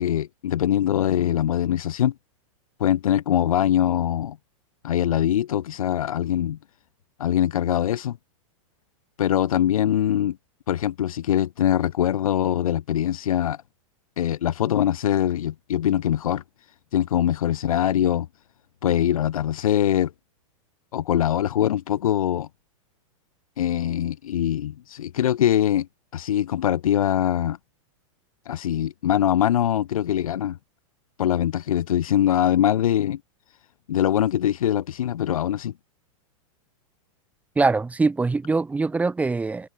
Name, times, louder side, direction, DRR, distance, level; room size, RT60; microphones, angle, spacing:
voice 1, 0.0-2.1 2.8-4.4 4.8-6.6 7.2-8.2 9.2-10.4 10.7-13.6 14.2-16.4 16.9-18.3 18.8-20.1 20.9-22.5 23.6-25.9 26.1-27.6 28.4-30.6 31.2-33.2 33.9-35.7, left 11 dB, 80° left, 6.8 m, -22 dB
voice 2, 37.6-39.7, right 3 dB, 10° right, 3.7 m, -23 dB
supercardioid pair, 150°, 18 cm